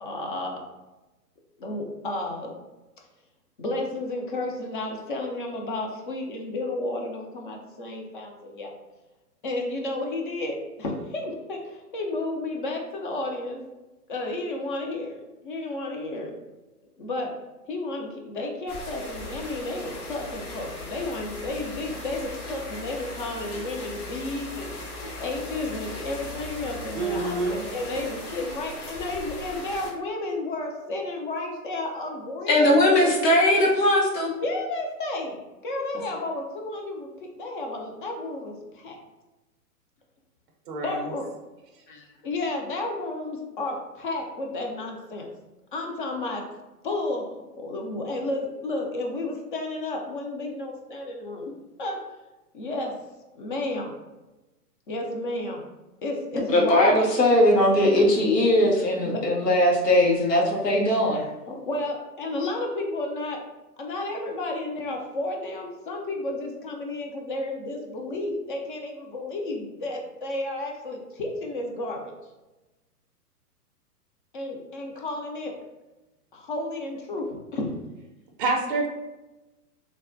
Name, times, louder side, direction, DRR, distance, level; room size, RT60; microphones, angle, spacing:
voice 1, 0.0-0.6 1.6-2.6 3.6-8.7 9.4-13.6 14.1-16.3 17.0-17.4 17.7-24.8 25.1-33.1 34.4-39.0 40.8-41.3 41.9-45.3 45.7-46.5 46.8-51.5 51.8-52.0 52.5-53.0 53.3-54.0 54.9-55.6 56.0-57.0 59.0-59.6 61.2-63.4 63.8-72.1 74.3-75.6 76.3-77.8, left 2 dB, 35° left, 1 dB, 0.4 m, -32 dB
sound 1, 18.7-29.9, left 2 dB, 70° left, 1.1 m, -38 dB
voice 2, 26.9-27.6 40.7-41.1 78.4-78.9, right 3 dB, 35° right, 1 dB, 0.5 m, -27 dB
voice 3, 32.5-34.3 56.4-61.2, left 1 dB, 90° left, -1 dB, 0.8 m, -20 dB
3.2 x 2.1 x 2.5 m, 1.1 s
hypercardioid pair, 120°, 47 cm